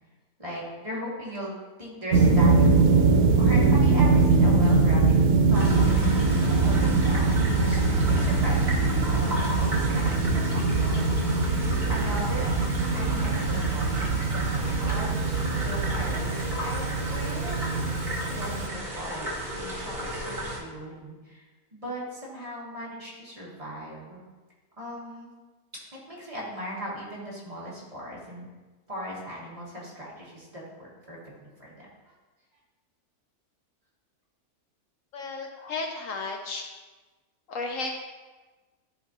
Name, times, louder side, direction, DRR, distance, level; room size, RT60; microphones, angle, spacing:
voice 1, 0.4-2.8 3.4-5.2 5.5-6.1 6.4-11.1 11.3-12.6 12.9-24.2 24.8-25.3 25.7-28.5 28.9-31.8, equal, 25° right, -7 dB, 1.8 m, -38 dB
sound 1, 2.1-18.7, right 3 dB, 85° right, 1.1 m, -22 dB
sound 2, 5.5-20.6, equal, 40° right, 1.7 m, -34 dB
voice 2, 35.1-36.6 37.5-38.0, left 3 dB, 70° left, 3 dB, 0.9 m, -33 dB
12.0 x 4.2 x 2.7 m, 1.3 s
omnidirectional pair, 1.6 m